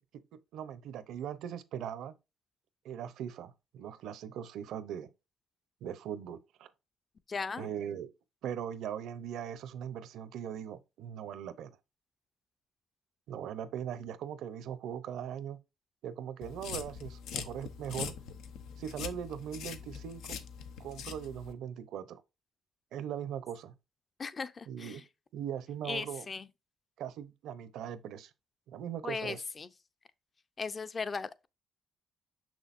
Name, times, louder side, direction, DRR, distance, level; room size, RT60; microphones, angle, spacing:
voice 1, 0.3-2.1 2.8-5.1 5.8-6.7 7.6-8.1 8.4-11.8 13.3-15.6 16.0-18.1 18.8-20.4 20.8-22.2 22.9-23.7 24.7-25.0 25.3-26.3 27.0-28.3 28.7-29.4, right 9 dB, 85° right, 0.7 m, -40 dB
voice 2, 7.3-7.7 24.2-25.0 25.8-26.5 29.0-29.7 30.6-31.5, left 4 dB, 35° left, 0.6 m, -37 dB
sound 1, 16.4-21.5, left 7 dB, 90° left, 0.8 m, -42 dB
6.4 x 6.2 x 2.6 m
cardioid pair, 90°, 0 cm